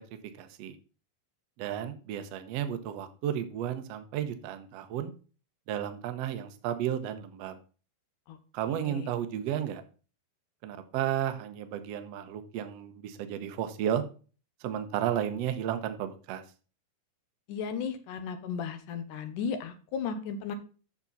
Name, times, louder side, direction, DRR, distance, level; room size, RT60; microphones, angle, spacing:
voice 1, 0.4-0.8 1.6-5.1 5.7-7.6 8.5-9.8 10.6-14.0 14.6-16.4, right 10 dB, 85° right, 8 dB, 1.4 m, -33 dB
voice 2, 8.7-9.1 17.5-20.6, left 6 dB, 70° left, 9 dB, 2.3 m, -35 dB
8.8 x 6.9 x 4.0 m, 0.36 s
omnidirectional pair, 4.2 m